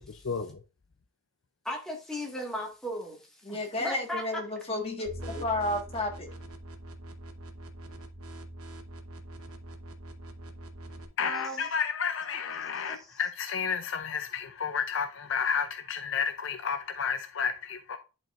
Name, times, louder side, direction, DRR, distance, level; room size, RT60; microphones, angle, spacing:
voice 1, 0.2-0.6 11.2-18.0, left 6 dB, 60° left, 0.5 m, -31 dB
voice 2, 1.7-3.2 3.5-4.2 11.2-11.7 12.9-13.2, left 1 dB, 5° left, 1.6 m, -36 dB
voice 3, 3.4-6.3, left 2 dB, 25° left, 1.5 m, -32 dB
sound 1, 5.1-11.1, right 1 dB, 80° right, 1.0 m, -43 dB
10.5 x 4.5 x 2.5 m
head